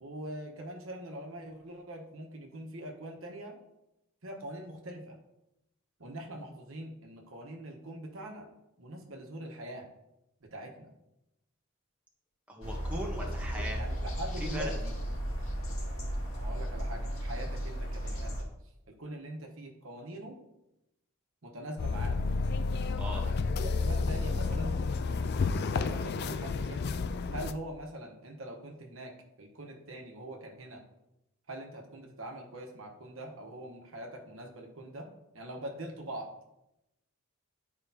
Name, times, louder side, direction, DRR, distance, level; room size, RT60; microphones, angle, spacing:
voice 1, 0.0-3.6 4.2-5.2 6.0-8.5 8.8-9.9 10.5-10.9 13.2-13.3 13.5-14.9 16.4-18.5 19.0-20.4 21.4-22.2 23.2-24.8 25.2-26.9 27.3-30.8 31.5-35.1 35.3-36.3, right 1 dB, 65° right, 2 dB, 1.2 m, -43 dB
voice 2, 12.5-13.8 14.4-14.7 22.9-23.2, equal, 5° right, -2 dB, 1.0 m, -39 dB
sound 1, 12.6-18.4, equal, 70° left, 2.1 m, -35 dB
sound 2, 21.8-27.5, left 4 dB, 50° left, 0.3 m, -31 dB
10.5 x 4.9 x 2.8 m, 0.89 s
head